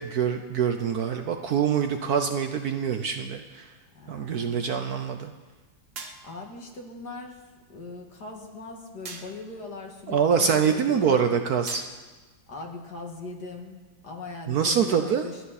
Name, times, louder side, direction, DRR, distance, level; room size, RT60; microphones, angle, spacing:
voice 1, 0.0-3.7 4.1-5.3 10.1-11.8 14.5-15.2, right 7 dB, 60° right, 6 dB, 1.1 m, -25 dB
voice 2, 3.9-4.5 6.2-7.4 7.7-11.3 12.5-13.8 14.0-15.4, left 3 dB, 55° left, 1 dB, 2.6 m, -40 dB
sound 1, 5.9-6.6 9.0-9.6 11.7-12.3, right 4 dB, 40° right, 1.0 m, -42 dB
30.0 x 10.0 x 4.2 m, 1.3 s
omnidirectional pair, 2.1 m